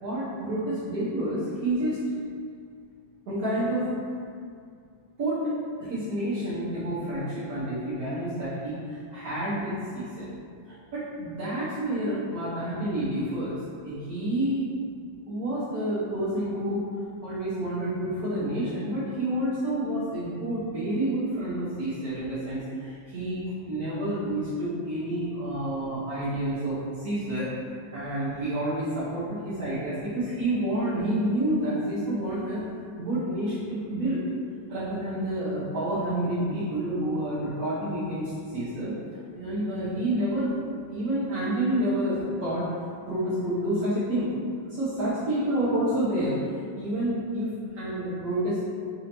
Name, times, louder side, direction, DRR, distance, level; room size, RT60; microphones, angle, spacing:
voice 1, 0.0-2.0 3.3-3.9 5.2-5.4 5.8-10.3 10.7-13.5 13.8-14.6 15.3-16.8 17.2-27.5 27.9-32.6 33.0-34.2 34.7-38.9 39.3-40.5 40.9-42.7 43.0-44.3 44.7-47.5 47.7-48.6, right 1 dB, 60° right, -12 dB, 1.3 m, -29 dB
4.2 x 2.6 x 2.9 m, 2.2 s
omnidirectional pair, 2.1 m